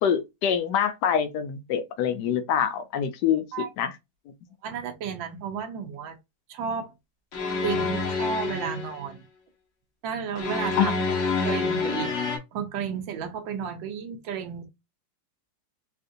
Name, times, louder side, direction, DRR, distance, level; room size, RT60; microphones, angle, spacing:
voice 1, 0.0-3.9 10.8-10.9, left 8 dB, 70° left, 1.1 m, -25 dB
voice 2, 4.6-6.2 6.5-6.9 7.6-9.2 10.0-10.9 11.5-12.1 12.5-14.7, right 7 dB, 85° right, 1.4 m, -32 dB
sound 1, 7.3-9.0 10.4-12.4, left 4 dB, 55° left, 1.0 m, -27 dB
3.6 x 2.5 x 2.5 m
omnidirectional pair, 2.0 m